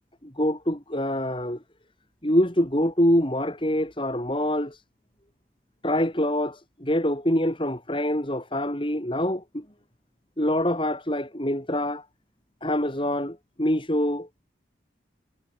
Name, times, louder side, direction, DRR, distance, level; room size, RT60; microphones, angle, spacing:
voice 1, 0.2-1.6 2.2-4.8 5.8-9.6 10.4-12.0 12.6-14.3, left 1 dB, 30° left, 6.1 m, -25 dB
head